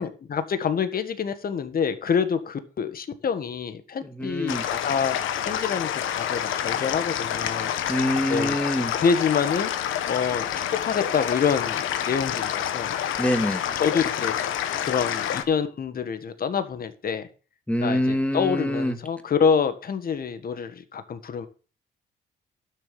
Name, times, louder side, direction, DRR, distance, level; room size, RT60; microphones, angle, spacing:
voice 1, 0.0-5.2 5.5-7.7 8.3-8.5 8.9-9.7 10.1-12.9 13.8-14.4 14.8-17.3 17.8-21.5, left 6 dB, 50° left, 10 dB, 1.6 m, -26 dB
voice 2, 4.0-4.7 7.9-8.9 13.2-13.7 17.7-19.0, equal, 5° left, 6 dB, 2.4 m, -25 dB
sound 1, 4.5-15.4, left 10 dB, 85° left, 1.3 m, -28 dB
12.0 x 6.9 x 6.5 m, 0.36 s
cardioid pair, 90°, 20 cm